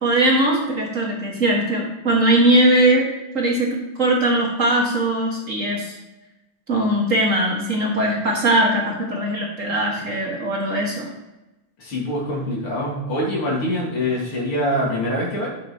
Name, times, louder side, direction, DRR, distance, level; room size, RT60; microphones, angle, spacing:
voice 1, 0.0-3.1 3.3-6.0 6.7-11.1, right 1 dB, 40° right, -2 dB, 1.8 m, -20 dB
voice 2, 11.8-15.5, left 1 dB, 80° left, -4 dB, 3.6 m, -24 dB
10.5 x 7.6 x 2.9 m, 0.99 s
omnidirectional pair, 2.4 m